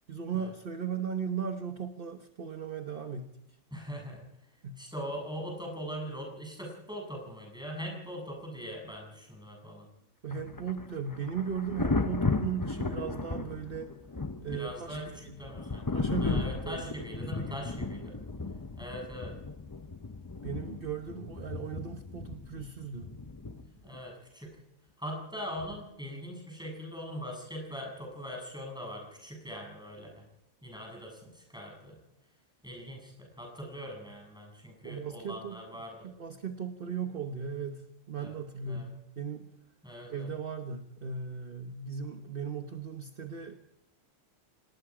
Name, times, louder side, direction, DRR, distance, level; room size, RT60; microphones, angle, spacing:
voice 1, 0.1-3.4 4.6-4.8 10.2-13.9 14.4-15.4 15.9-17.6 20.4-23.1 34.8-35.6 36.0-39.5 40.1-43.5, right 6 dB, 45° right, 6 dB, 1.3 m, -37 dB
voice 2, 3.7-4.2 4.8-9.9 14.5-18.2 18.8-19.3 23.7-24.5 25.0-30.1 30.6-32.0 32.6-36.1 38.2-38.3 38.6-38.9 39.8-40.3, equal, 5° right, 0 dB, 7.5 m, -41 dB
Thunder, 10.3-24.0 25.6-25.8, left 3 dB, 20° left, 0.6 m, -35 dB
27.5 x 19.5 x 5.0 m, 0.85 s
omnidirectional pair, 1.3 m